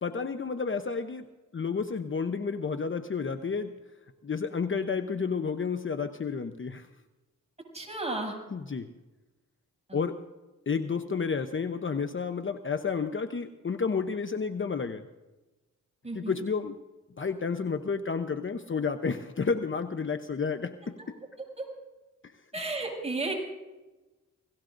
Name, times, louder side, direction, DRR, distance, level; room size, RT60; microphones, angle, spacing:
voice 1, 0.0-1.3 1.5-3.7 4.2-6.9 8.5-8.9 9.9-10.2 10.7-15.1 16.1-16.8 17.2-20.9, left 5 dB, 40° left, 8 dB, 0.9 m, -31 dB
voice 2, 7.7-8.4 9.9-10.0 16.0-16.4 21.6-21.7 22.5-23.3, right 2 dB, 20° right, -1 dB, 7.2 m, -33 dB
29.0 x 18.0 x 2.6 m, 1.1 s
cardioid pair, 70°, 32 cm